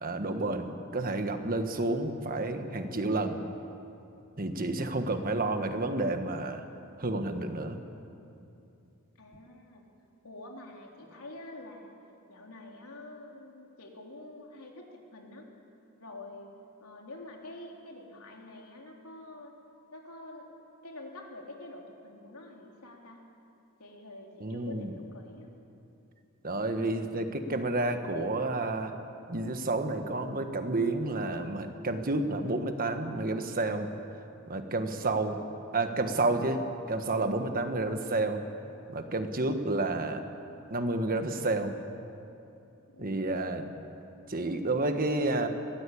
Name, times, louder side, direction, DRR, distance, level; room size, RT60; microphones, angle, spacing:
voice 1, 0.0-3.4 4.4-6.6 7.0-7.8 24.4-24.9 26.4-28.9 29.3-33.9 34.5-35.4 35.7-38.4 38.9-40.2 40.7-41.8 43.0-43.7 44.3-45.5, right 2 dB, 40° right, 7 dB, 1.4 m, -30 dB
voice 2, 9.2-9.8 10.2-12.0 12.3-15.5 16.0-16.5 16.8-19.5 19.9-20.5 20.8-23.2 23.8-25.5 42.9-43.3, left 2 dB, 85° left, 0 dB, 3.5 m, -47 dB
22.0 x 18.0 x 8.6 m, 2.8 s
head